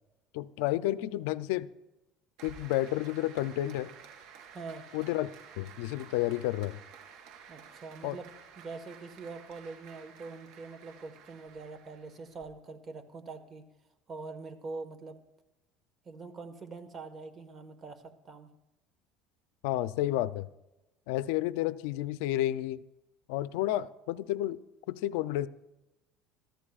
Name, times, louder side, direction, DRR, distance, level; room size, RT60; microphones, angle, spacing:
voice 1, 0.3-1.7 2.4-3.9 4.9-6.8 8.0-8.2 19.6-20.5 21.1-22.8 23.3-24.6 24.9-25.5, left 15 dB, 85° left, 0.5 m, -31 dB
Applause, 2.4-12.5, right 7 dB, 70° right, 3.6 m, -52 dB
voice 2, 4.5-4.9 7.5-8.3 8.6-13.6 14.1-15.2 16.0-18.5, right 4 dB, 30° right, 1.5 m, -44 dB
23.5 x 14.5 x 2.5 m
cardioid pair, 130°, 0 cm